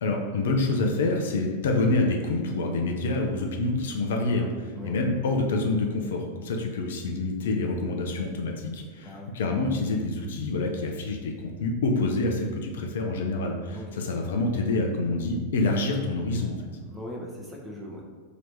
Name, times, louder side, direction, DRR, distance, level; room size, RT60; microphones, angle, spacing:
voice 1, 0.0-16.7, left 2 dB, 60° left, 2 dB, 0.4 m, -27 dB
voice 2, 9.0-9.3 13.7-13.9 16.9-18.0, left 1 dB, 10° right, -2 dB, 0.7 m, -39 dB
2.9 x 2.8 x 3.4 m, 1.4 s
figure-of-eight pair, 90°, 0 cm